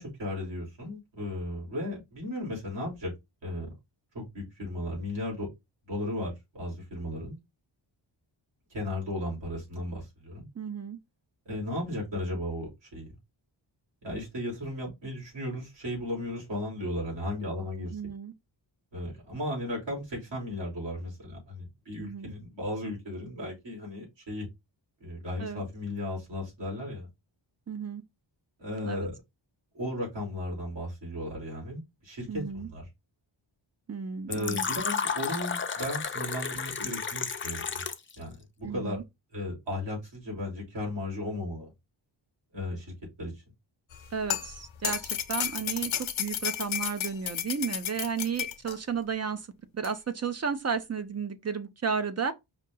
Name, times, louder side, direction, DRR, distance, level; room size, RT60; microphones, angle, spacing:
voice 1, 0.0-3.1 3.4-3.7 4.1-5.5 5.8-7.4 8.7-10.5 11.4-13.1 14.0-18.0 18.9-24.5 25.0-27.1 28.6-29.1 29.7-32.9 34.3-37.8 38.2-39.0 39.3-41.7 42.5-42.9 43.2-43.4, left 1 dB, 70° right, 3.5 m, -35 dB
voice 2, 10.6-11.0 17.9-18.3 22.0-22.3 25.4-25.6 27.7-28.0 28.9-29.1 32.3-32.7 33.9-34.7 38.6-39.0 44.1-49.5 49.7-52.3, right 6 dB, 35° right, 0.5 m, -33 dB
Fill (with liquid), 34.3-38.1, left 6 dB, 25° left, 0.5 m, -32 dB
sound 1, 43.9-48.8 49.8-49.9, left 9 dB, 90° left, 0.8 m, -33 dB
5.2 x 2.7 x 3.7 m
wide cardioid pair, 165°, 46 cm